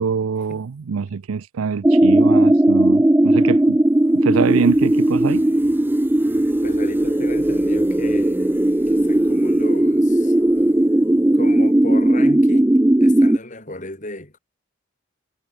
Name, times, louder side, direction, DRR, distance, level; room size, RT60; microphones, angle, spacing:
voice 1, 0.0-3.8 4.1-5.5, right 5 dB, 85° right, 0.5 m, -24 dB
sound 1, 1.8-13.4, right 1 dB, 10° right, 0.3 m, -17 dB
voice 2, 6.6-8.6 8.9-10.3 11.3-12.7 13.0-14.4, left 1 dB, 35° left, 4.5 m, -35 dB
head